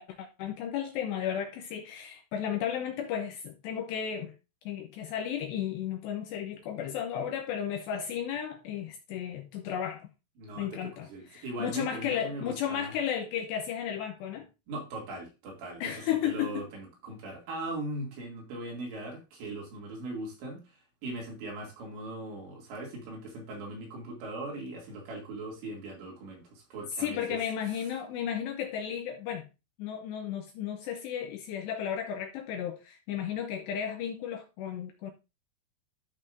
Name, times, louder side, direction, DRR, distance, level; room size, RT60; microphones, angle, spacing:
voice 1, 0.0-4.3 4.7-10.1 10.6-14.5 15.8-16.6 27.0-29.4 29.8-35.1, left 9 dB, 80° left, 2.6 m, -34 dB
voice 2, 10.4-12.9 14.7-15.9 16.2-27.4, right 2 dB, 65° right, 4.7 m, -40 dB
13.5 x 5.5 x 2.6 m
omnidirectional pair, 5.7 m